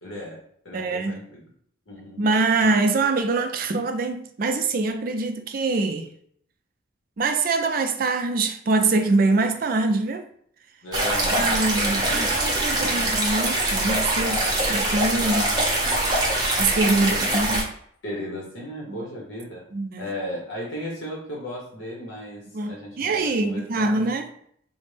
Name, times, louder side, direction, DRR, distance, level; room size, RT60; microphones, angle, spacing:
voice 1, 0.0-0.4 0.6-1.4 1.9-2.2 2.6-2.7 10.8-12.4 12.7-13.0 14.1-14.7 15.2-15.6 16.9-17.6 18.0-19.6 20.0-24.1, left 1 dB, 75° left, 1.0 m, -35 dB
voice 2, 0.7-1.2 2.2-6.1 7.2-10.3 11.3-14.4 14.7-15.4 16.6-17.7 18.9-19.0 19.7-20.1 22.5-24.3, right 3 dB, 45° right, 0.4 m, -24 dB
sound 1, 10.9-17.6, right 1 dB, 20° right, 0.7 m, -23 dB
4.0 x 2.1 x 3.2 m
head